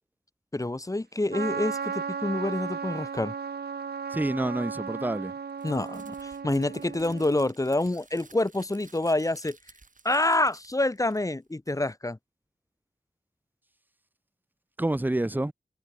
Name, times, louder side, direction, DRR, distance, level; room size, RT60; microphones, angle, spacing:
voice 1, 0.5-3.3 5.6-9.6 10.0-12.2, left 2 dB, 20° left, 0.8 m, -27 dB
Trumpet, 1.3-7.5, right 6 dB, 75° right, 0.8 m, -35 dB
voice 2, 4.1-5.3 14.8-15.5, right 1 dB, 10° right, 0.6 m, -28 dB
Crumpling crinkling, 5.6-11.5, right 3 dB, 50° right, 2.3 m, -55 dB
cardioid pair, 50°, 17 cm